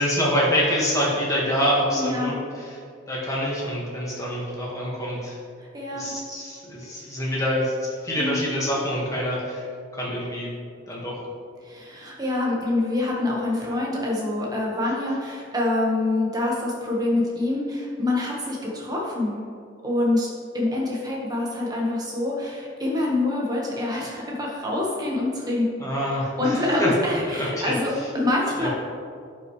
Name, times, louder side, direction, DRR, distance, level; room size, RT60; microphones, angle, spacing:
voice 1, 0.0-2.8 3.1-5.4 5.9-10.5 10.9-11.2 25.8-26.9 27.2-27.7 28.6-28.7, equal, 15° left, -5 dB, 1.7 m, -26 dB
voice 2, 1.9-2.4 5.6-6.2 8.2-8.5 11.6-19.5 19.8-20.3 20.5-28.7, left 2 dB, 20° right, -3 dB, 1.4 m, -26 dB
10.0 x 5.9 x 3.2 m, 2.3 s
head